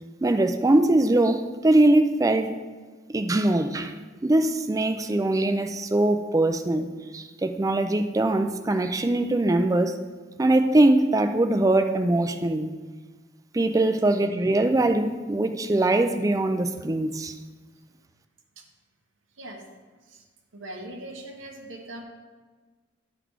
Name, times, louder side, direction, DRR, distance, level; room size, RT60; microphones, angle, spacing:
voice 1, 0.2-2.5 3.1-3.9 4.2-6.9 7.1-10.0 10.4-12.7 13.5-17.3, right 2 dB, 15° right, 8 dB, 0.4 m, -22 dB
voice 2, 20.5-22.0, right 1 dB, 80° right, 1 dB, 1.2 m, -40 dB
11.5 x 4.0 x 4.7 m, 1.4 s
head